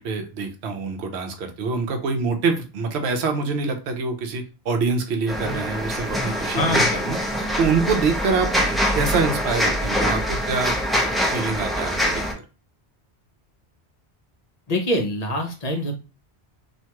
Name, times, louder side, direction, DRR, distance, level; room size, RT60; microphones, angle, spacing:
voice 1, 0.0-7.2 7.6-12.2, right 4 dB, 75° right, 5 dB, 0.9 m, -25 dB
sound 1, 5.3-12.3, equal, ahead, 0.4 m, -24 dB
voice 2, 6.5-6.9 14.7-15.9, left 1 dB, 45° left, 2 dB, 0.6 m, -24 dB
2.5 x 2.2 x 2.9 m, 0.32 s
omnidirectional pair, 1.1 m